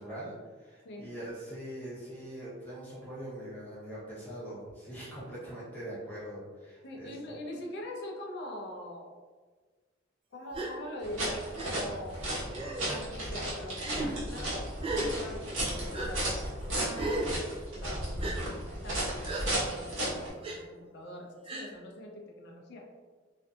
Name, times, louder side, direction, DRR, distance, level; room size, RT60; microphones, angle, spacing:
voice 1, 0.0-7.2, right 1 dB, 10° left, -10 dB, 0.7 m, -42 dB
voice 2, 6.8-9.2 10.3-12.3 12.8-16.4 16.7-17.4 17.8-22.9, left 1 dB, 60° left, 1 dB, 0.4 m, -43 dB
Gasp, 10.5-10.7 11.6-11.7 12.5-12.9 13.7-14.1 14.8-15.1 15.9-16.1 16.9-17.3 18.2-18.4 19.2-19.4 20.4-20.6 21.4-21.7, right 2 dB, 30° right, 0.4 m, -34 dB
sound 1, 11.0-20.3, right 1 dB, 80° right, 1.0 m, -34 dB
2.6 x 2.5 x 2.3 m, 1.4 s
head